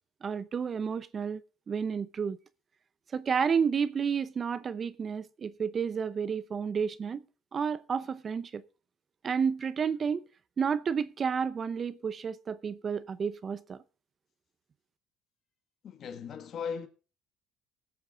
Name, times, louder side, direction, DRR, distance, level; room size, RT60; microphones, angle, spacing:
voice 1, 0.2-1.4 1.7-2.4 3.1-7.2 7.5-8.6 9.2-10.3 10.6-13.8, right 6 dB, 35° right, 0.7 m, -31 dB
voice 2, 15.8-16.9, left 6 dB, 50° left, 1.7 m, -37 dB
19.5 x 8.0 x 3.8 m
cardioid pair, 115°, 0 cm